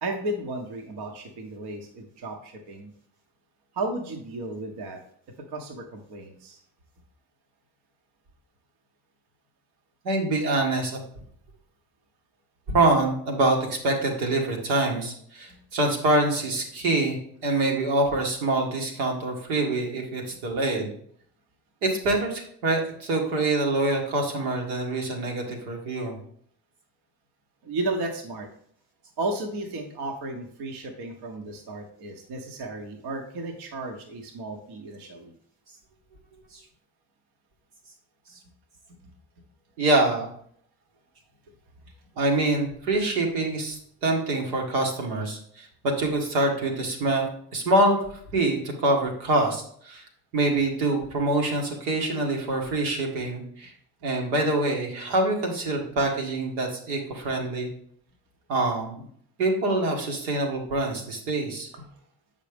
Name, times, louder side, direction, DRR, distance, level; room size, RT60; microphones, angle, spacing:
voice 1, 0.0-2.9 3.7-5.0 5.5-6.6 15.5-15.6 27.6-28.5 29.2-35.3 61.7-61.9, right 2 dB, 60° right, 3 dB, 1.2 m, -34 dB
voice 2, 10.0-11.0 12.7-20.9 21.8-26.2 36.5-36.6 39.8-40.3 42.2-48.0 48.3-50.0 50.3-53.7 54.0-57.7 58.5-59.0 59.4-61.7, right 2 dB, 80° right, 1 dB, 1.5 m, -25 dB
7.4 x 5.3 x 3.5 m, 0.63 s
hypercardioid pair, 50°, 45 cm